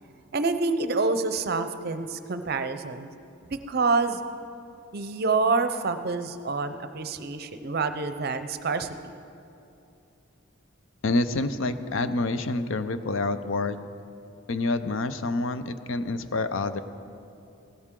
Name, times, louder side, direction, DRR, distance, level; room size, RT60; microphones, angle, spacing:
voice 1, 0.3-3.1 3.5-4.2 4.9-9.1, right 4 dB, 50° right, 9 dB, 0.6 m, -27 dB
voice 2, 11.0-13.8 14.5-16.8, left 2 dB, 70° left, 11 dB, 0.6 m, -27 dB
15.5 x 12.5 x 3.7 m, 2.7 s
head